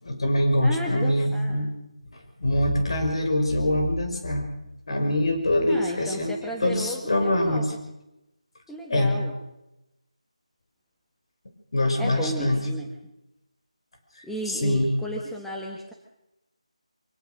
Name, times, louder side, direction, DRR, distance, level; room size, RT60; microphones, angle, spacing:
voice 1, 0.0-1.7 2.4-4.5 4.9-7.7 8.9-9.2 11.7-12.6 14.5-14.9, left 1 dB, 50° left, 5 dB, 5.8 m, -24 dB
voice 2, 0.6-1.6 5.7-7.7 8.7-9.3 12.0-12.9 14.2-15.9, equal, ahead, -2 dB, 1.1 m, -34 dB
25.0 x 17.0 x 6.5 m, 0.90 s
figure-of-eight pair, 175°, 4 cm